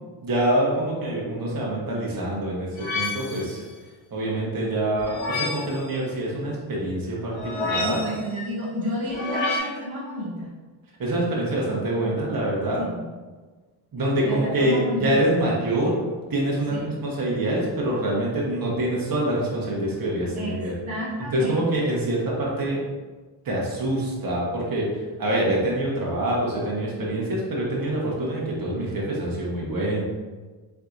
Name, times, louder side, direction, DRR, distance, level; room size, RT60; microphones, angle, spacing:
voice 1, 0.2-2.7 2.9-3.6 4.1-8.0 11.0-12.8 13.9-16.0 16.3-20.7 21.3-22.8 23.4-24.9 25.2-30.0, right 1 dB, 45° right, -4 dB, 1.3 m, -25 dB
sound 1, 2.8-3.6 5.0-5.8 7.4-8.3 9.1-9.6, left 3 dB, 65° left, 1.2 m, -28 dB
voice 2, 7.7-10.5 12.8-13.1 14.2-15.1 16.7-16.9 20.3-20.6 20.8-21.7, equal, 60° right, -10 dB, 1.3 m, -31 dB
4.5 x 3.3 x 2.6 m, 1.3 s
cardioid pair, 100°, 48 cm